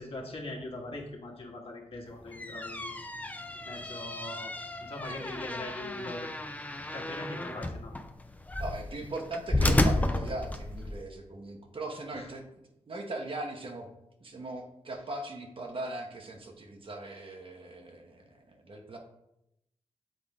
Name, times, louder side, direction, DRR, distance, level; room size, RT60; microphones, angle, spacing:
voice 1, 0.0-3.1 3.6-4.5 4.8-6.3 6.9-7.9 12.1-12.3, left 2 dB, 55° left, -1 dB, 1.5 m, -41 dB
sound 1, 2.1-11.0, left 1 dB, 15° left, 0.6 m, -32 dB
voice 2, 8.6-13.9 14.2-19.0, right 2 dB, 50° right, 2 dB, 1.1 m, -39 dB
7.8 x 3.6 x 3.5 m, 0.83 s
cardioid pair, 60°, 12 cm